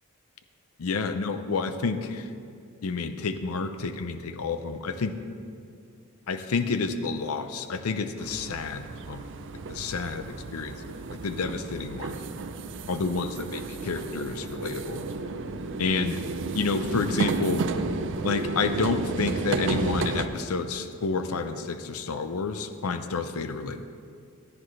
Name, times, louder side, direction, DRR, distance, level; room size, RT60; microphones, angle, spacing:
voice 1, 0.8-2.3 2.8-5.2 6.3-9.3 9.7-12.2 12.9-15.0 15.8-16.2 16.5-17.7 18.2-23.8, left 4 dB, 80° left, 9 dB, 0.6 m, -30 dB
sound 1, 8.2-20.3, right 3 dB, 60° right, 0.5 m, -32 dB
14.5 x 10.0 x 3.2 m, 2.3 s
head